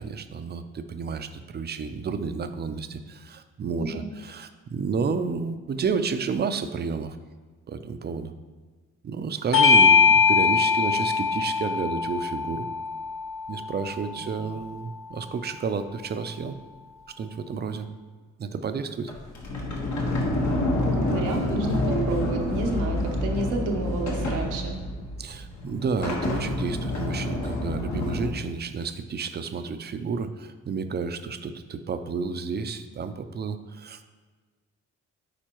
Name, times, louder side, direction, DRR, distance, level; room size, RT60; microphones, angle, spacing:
voice 1, 0.0-7.2 7.7-8.3 9.0-12.7 13.5-16.6 17.2-17.9 18.4-19.1 25.2-34.1, right 5 dB, 35° right, 10 dB, 0.5 m, -31 dB
Bell / Doorbell, 9.5-14.4, left 5 dB, 45° left, 0.6 m, -21 dB
Sliding door, 19.1-28.3, left 1 dB, 65° left, 1.5 m, -28 dB
voice 2, 20.7-24.8, right 2 dB, 90° right, 2 dB, 1.0 m, -30 dB
9.0 x 4.3 x 3.0 m, 1.4 s
cardioid pair, 90°, 30 cm